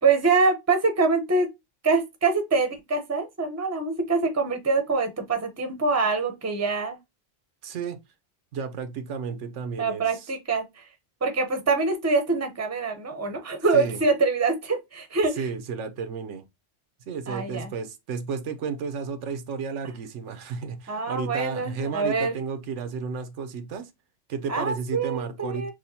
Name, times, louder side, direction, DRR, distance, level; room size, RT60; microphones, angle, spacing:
voice 1, 0.0-1.5 1.8-7.0 9.8-10.8 11.2-15.4 17.3-17.7 20.9-22.3 24.5-25.7, right 4 dB, 15° right, 0.6 m, -25 dB
voice 2, 7.6-8.0 8.5-10.1 13.7-14.0 15.4-16.5 17.1-23.9 24.3-25.7, right 5 dB, 90° right, 1.0 m, -32 dB
6.1 x 2.3 x 2.7 m
omnidirectional pair, 1.2 m